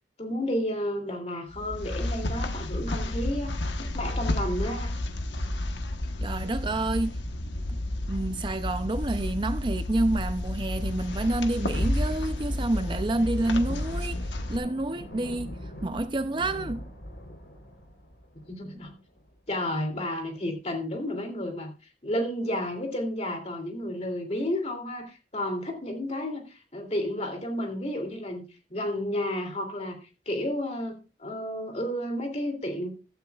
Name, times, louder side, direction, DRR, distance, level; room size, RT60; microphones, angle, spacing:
voice 1, 0.2-4.9 18.5-18.9 19.5-21.7 22.0-28.4 28.7-30.0 30.3-32.9, left 1 dB, 35° left, 2.9 m, -31 dB
sound 1, 1.5-14.6, left 1 dB, 90° left, 1.2 m, -31 dB
voice 2, 6.2-7.2 7.7-7.8 8.1-14.2 14.5-15.6 15.8-16.9, right 2 dB, 25° right, 0.6 m, -28 dB
Thunder, 11.0-19.8, equal, 75° left, 3.8 m, -43 dB
15.5 x 12.5 x 2.4 m
head